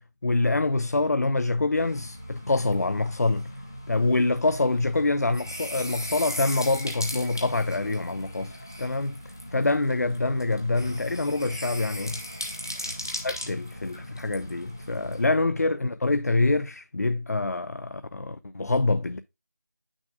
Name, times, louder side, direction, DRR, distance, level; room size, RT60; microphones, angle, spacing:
voice 1, 0.0-3.5 3.9-9.2 9.5-12.2 13.2-19.2, left 2 dB, 65° left, 0.5 m, -25 dB
sound 1, 1.8-15.3, equal, 15° left, 0.6 m, -38 dB
8.9 x 6.2 x 2.3 m
figure-of-eight pair, 180°, 9 cm